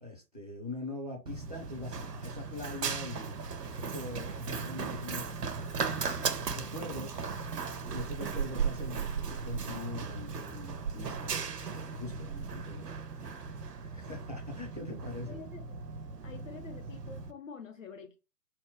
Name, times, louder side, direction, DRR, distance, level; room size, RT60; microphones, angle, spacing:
voice 1, 0.0-3.4 3.8-6.1 6.5-7.2 7.9-12.9 13.8-15.4, left 2 dB, 25° right, 0.4 m, -43 dB
Run, 1.3-17.3, right 5 dB, 70° right, 0.8 m, -37 dB
voice 2, 15.2-15.6 16.2-18.2, left 5 dB, 50° left, 0.6 m, -47 dB
2.8 x 2.1 x 3.4 m
figure-of-eight pair, 130°, 50 cm